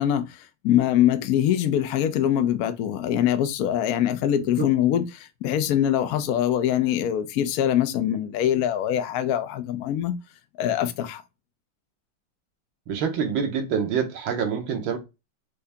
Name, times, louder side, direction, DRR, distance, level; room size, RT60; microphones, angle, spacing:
voice 1, 0.0-10.2 10.6-11.2, left 11 dB, 75° left, 0.8 m, -23 dB
voice 2, 12.9-15.0, right 7 dB, 85° right, 1.8 m, -26 dB
4.7 x 2.7 x 3.4 m
omnidirectional pair, 2.2 m